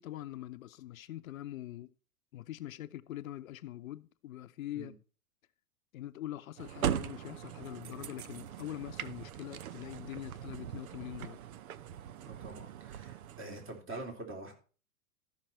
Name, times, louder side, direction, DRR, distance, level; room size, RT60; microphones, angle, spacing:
voice 1, 0.0-1.9 2.3-4.9 5.9-11.4, left 14 dB, 65° left, 0.8 m, -43 dB
sound 1, 6.6-13.8, right 10 dB, 75° right, 0.8 m, -40 dB
voice 2, 12.2-14.5, right 2 dB, 25° right, 3.6 m, -45 dB
14.0 x 5.9 x 4.4 m
hypercardioid pair, 115°, 43 cm